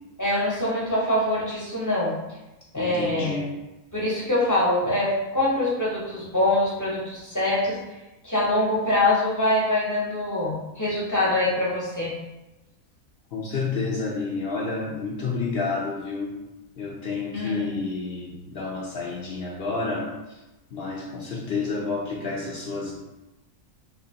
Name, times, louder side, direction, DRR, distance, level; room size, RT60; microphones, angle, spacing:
voice 1, 0.2-2.1 2.7-3.4 3.9-7.8 8.2-12.1 17.3-17.8, left 1 dB, 20° left, -6 dB, 0.6 m, -24 dB
voice 2, 2.8-3.5 13.3-16.4 16.8-20.4 20.7-22.9, left 4 dB, 60° left, -3 dB, 0.6 m, -30 dB
3.7 x 2.9 x 2.7 m, 1.0 s
omnidirectional pair, 1.5 m